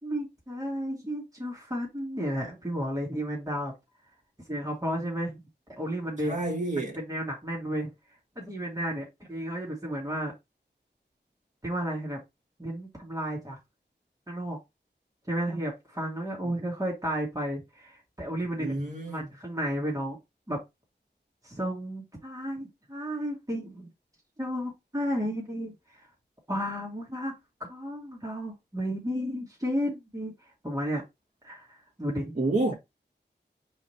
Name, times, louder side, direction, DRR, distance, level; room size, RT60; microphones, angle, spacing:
voice 1, 0.0-3.7 4.5-5.4 5.8-6.4 7.0-7.9 8.4-10.3 11.6-12.2 12.6-13.6 14.3-14.6 15.3-18.7 19.1-20.2 20.5-20.6 21.4-23.9 24.4-26.1 26.5-27.3 27.7-30.3 30.6-31.0 31.4-32.3, equal, 20° right, 1.9 m, -32 dB
voice 2, 6.2-7.0 16.4-16.5 18.6-19.3 32.4-32.7, right 2 dB, 40° right, 1.9 m, -29 dB
4.8 x 3.5 x 2.9 m
wide cardioid pair, 50°, 19 cm